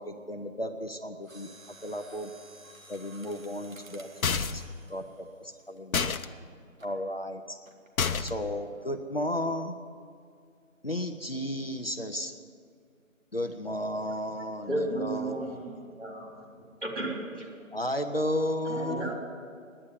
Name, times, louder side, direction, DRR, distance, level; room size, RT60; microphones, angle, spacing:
voice 1, 0.0-2.3 2.9-6.2 6.8-7.6 8.2-9.8 10.8-12.3 13.3-15.6 17.7-19.1, left 1 dB, 45° left, 6 dB, 0.6 m, -34 dB
Mechanisms, 1.2-6.2 6.8-7.0 7.7-8.0 8.3-8.4, right 2 dB, 75° right, 1.6 m, -53 dB
sound 1, 4.2-4.7 5.9-6.3 8.0-8.5, left 6 dB, 85° left, 0.8 m, -28 dB
voice 2, 14.7-16.4 16.8-17.7 18.6-19.2, right 2 dB, 55° right, -2 dB, 3.9 m, -34 dB
voice 3, 15.3-15.9 16.2-16.8 18.7-19.1, equal, 25° right, -4 dB, 1.5 m, -51 dB
9.9 x 9.5 x 9.9 m, 2.2 s
figure-of-eight pair, 175°, 41 cm